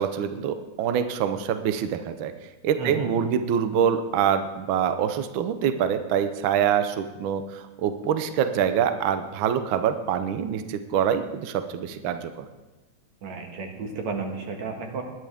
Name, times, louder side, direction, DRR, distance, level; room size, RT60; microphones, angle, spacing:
voice 1, 0.0-2.3 2.6-12.5, right 8 dB, 85° right, 9 dB, 1.1 m, -25 dB
voice 2, 2.8-3.1 13.2-15.0, right 4 dB, 70° right, 3 dB, 2.8 m, -32 dB
19.5 x 11.5 x 3.5 m, 1.1 s
omnidirectional pair, 3.3 m